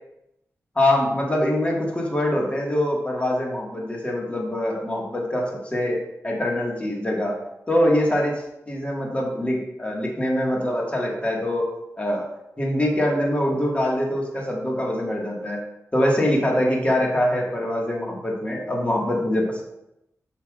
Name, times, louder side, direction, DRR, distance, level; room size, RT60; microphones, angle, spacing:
voice 1, 0.7-7.4 7.7-11.7 12.0-12.3 12.6-15.6 15.9-19.6, left 1 dB, 20° left, -2 dB, 1.7 m, -24 dB
8.3 x 5.8 x 2.4 m, 0.85 s
wide cardioid pair, 100°, 6 cm